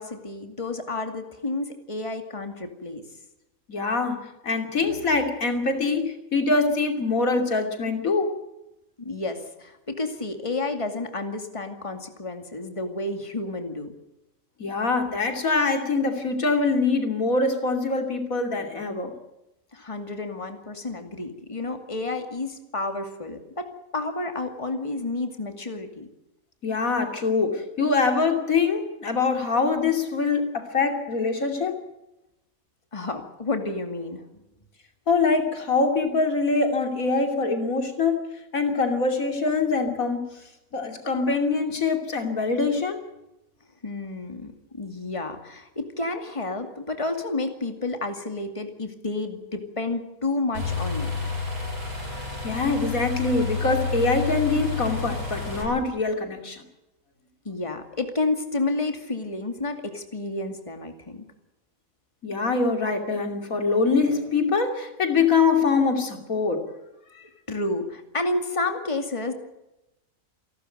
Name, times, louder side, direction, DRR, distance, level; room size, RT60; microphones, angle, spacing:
voice 1, 0.0-3.0 9.0-13.9 19.7-26.1 32.9-34.4 43.8-51.1 57.4-61.2 67.5-69.3, left 2 dB, 20° left, 6 dB, 2.4 m, -30 dB
voice 2, 3.7-8.3 14.6-19.1 26.6-31.8 35.1-38.3 38.5-40.3 40.7-43.0 52.4-56.6 62.2-66.6 67.1-67.2, left 4 dB, 85° left, 5 dB, 3.3 m, -24 dB
sound 1, 50.5-55.6, left 3 dB, 80° right, 8.7 m, -29 dB
28.5 x 12.5 x 9.1 m, 0.93 s
omnidirectional pair, 1.4 m